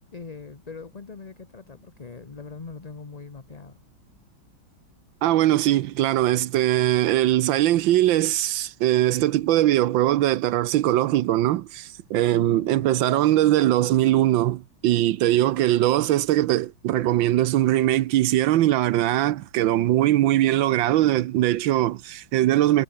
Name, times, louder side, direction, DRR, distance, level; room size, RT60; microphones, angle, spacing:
voice 1, 0.1-3.8 12.3-13.3, left 4 dB, 25° left, 1.0 m, -41 dB
voice 2, 5.2-22.8, right 14 dB, 80° right, 1.4 m, -21 dB
omnidirectional pair, 2.1 m